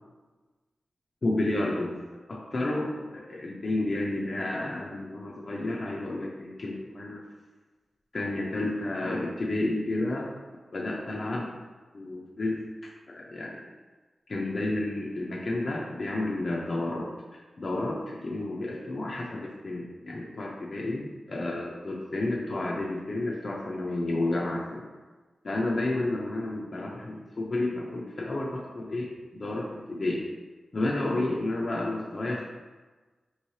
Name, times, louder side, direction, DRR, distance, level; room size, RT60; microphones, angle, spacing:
voice 1, 1.2-1.9 2.3-7.2 8.1-10.3 10.7-11.5 11.9-12.6 13.1-13.6 14.3-17.1 17.3-24.9 25.4-29.1 29.3-30.3 30.7-32.4, left 2 dB, 45° left, -3 dB, 0.5 m, -31 dB
5.3 x 3.1 x 2.7 m, 1.3 s
wide cardioid pair, 100°, 0 cm